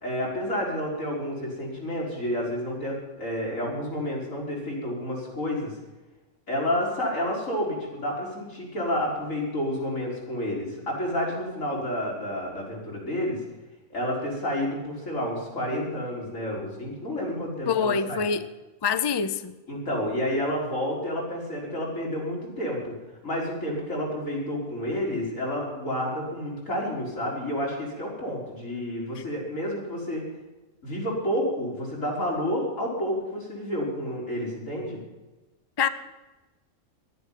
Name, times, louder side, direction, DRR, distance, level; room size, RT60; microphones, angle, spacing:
voice 1, 0.0-5.7 6.5-13.4 13.9-18.2 19.7-22.9 23.2-30.2 30.8-35.0, left 1 dB, 80° left, 4.9 m, -30 dB
voice 2, 17.7-18.5 18.8-19.5 35.8-35.9, left 6 dB, 35° left, 0.4 m, -25 dB
11.5 x 10.5 x 9.3 m
omnidirectional pair, 1.3 m